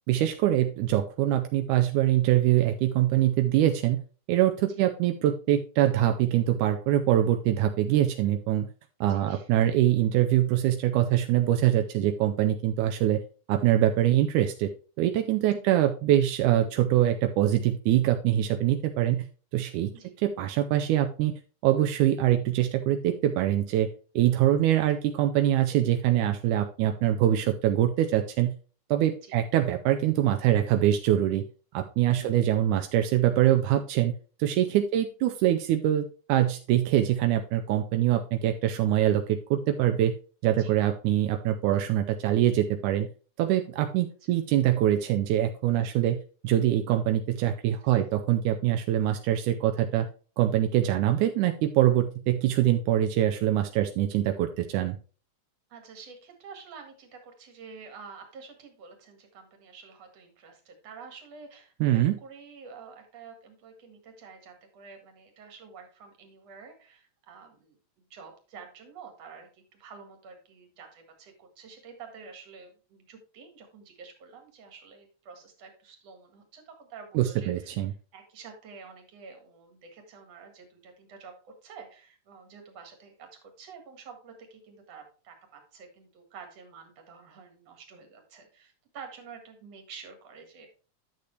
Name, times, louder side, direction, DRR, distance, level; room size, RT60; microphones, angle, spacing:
voice 1, 0.1-4.0 4.3-8.7 9.0-13.2 13.5-14.7 15.0-19.3 19.5-19.9 20.2-21.3 21.6-23.9 24.2-28.5 28.9-31.4 31.7-34.1 34.4-40.1 40.4-43.1 43.4-46.2 46.4-50.1 50.4-55.0 61.8-62.1 77.2-77.9, right 12 dB, 85° right, 6 dB, 2.1 m, -24 dB
voice 2, 9.0-9.5 15.4-15.7 19.9-20.1 29.2-29.4 40.5-40.7 44.3-44.4 45.8-46.0 47.8-48.1 55.7-77.8 78.1-90.7, right 5 dB, 55° right, 5 dB, 2.8 m, -49 dB
10.0 x 6.8 x 3.2 m, 0.37 s
omnidirectional pair, 3.6 m